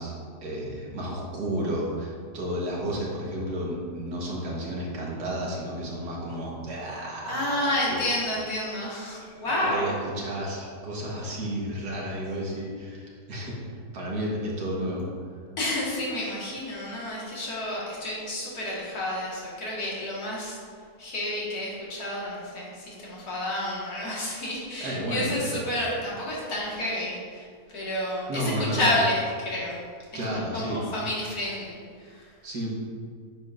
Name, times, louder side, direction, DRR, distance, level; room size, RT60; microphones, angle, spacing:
voice 1, 0.0-8.1 9.2-13.5 13.9-15.0 24.8-25.6 28.3-28.9 30.1-30.8 32.4-32.7, right 1 dB, 90° right, -3 dB, 2.0 m, -32 dB
voice 2, 7.3-10.1 15.6-20.6 21.0-27.5 27.7-29.8 30.1-32.3, left 1 dB, 70° left, -6 dB, 2.3 m, -30 dB
9.2 x 6.8 x 2.6 m, 2.1 s
omnidirectional pair, 1.7 m